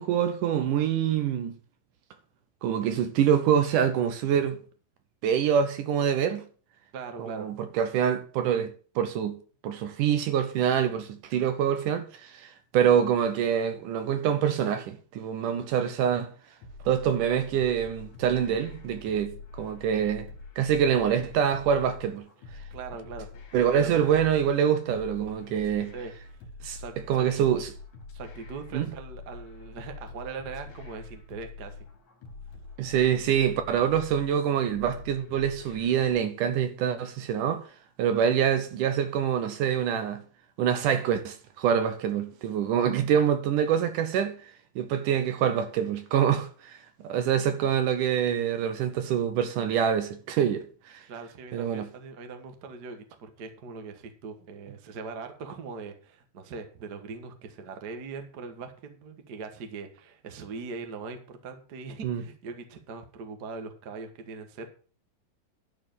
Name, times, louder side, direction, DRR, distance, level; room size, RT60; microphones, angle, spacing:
voice 1, 0.0-1.6 2.6-4.6 5.2-6.4 7.2-9.4 9.6-16.3 16.9-20.3 20.6-22.3 23.5-25.9 26.6-26.8 27.1-27.7 28.7-28.9 32.8-37.7 38.0-40.2 40.6-44.4 44.8-51.0 51.5-51.9 62.0-62.2, right 8 dB, 70° right, 2.3 m, -25 dB
voice 2, 6.9-7.5 22.7-23.3 23.8-24.1 25.9-26.1 26.7-27.3 28.1-31.9 51.1-64.7, right 4 dB, 50° right, 1.3 m, -41 dB
sound 1, 16.6-36.2, left 3 dB, 65° left, 3.6 m, -45 dB
12.0 x 4.9 x 7.6 m
omnidirectional pair, 4.1 m